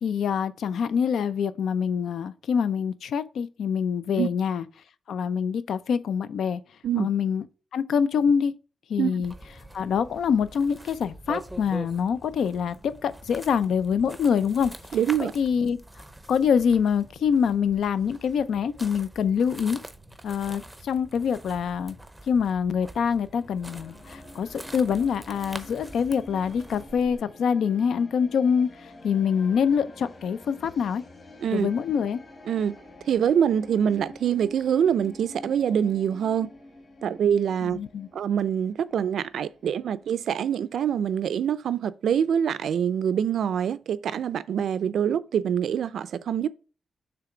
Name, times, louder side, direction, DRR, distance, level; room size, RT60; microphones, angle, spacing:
voice 1, 0.0-4.6 5.1-6.6 7.0-7.4 7.7-8.5 8.9-9.3 9.7-14.7 15.2-15.8 16.3-19.8 20.2-22.0 22.3-31.0 31.5-32.2 37.6-38.1, left 7 dB, 85° left, 0.5 m, -25 dB
sound 1, 9.2-27.2, right 1 dB, 5° right, 0.6 m, -44 dB
voice 2, 14.9-15.3 31.4-31.7 32.5-32.7 33.1-36.5 37.0-37.8 38.1-46.5, right 8 dB, 85° right, 0.4 m, -25 dB
sound 2, 23.3-41.5, left 2 dB, 35° left, 2.5 m, -48 dB
6.7 x 3.4 x 4.9 m
wide cardioid pair, 165°, 0 cm